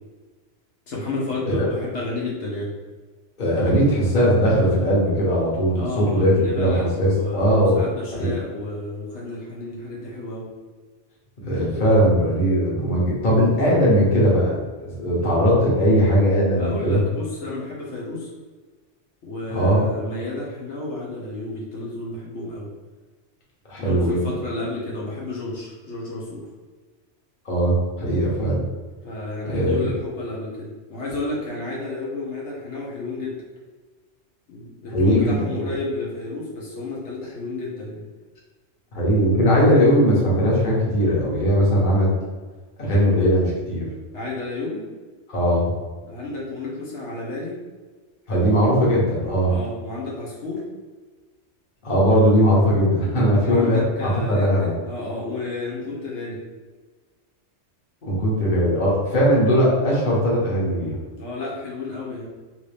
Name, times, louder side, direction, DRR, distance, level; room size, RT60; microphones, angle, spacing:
voice 1, 0.9-2.7 5.7-10.5 16.6-18.3 19.2-22.7 23.8-26.5 29.0-33.4 34.5-38.0 44.1-44.8 46.0-47.6 48.3-48.5 49.4-50.6 53.4-56.4 61.2-62.3, left 2 dB, 75° left, -5 dB, 1.1 m, -31 dB
voice 2, 3.4-7.8 8.1-8.3 11.4-14.6 15.0-17.0 19.5-19.8 23.7-24.3 27.4-28.6 29.4-29.9 34.9-35.7 38.9-42.1 42.8-43.9 45.3-45.7 48.3-49.6 51.8-54.7 58.0-61.0, equal, 45° left, -5 dB, 1.1 m, -19 dB
3.0 x 2.7 x 3.3 m, 1.4 s
omnidirectional pair, 1.2 m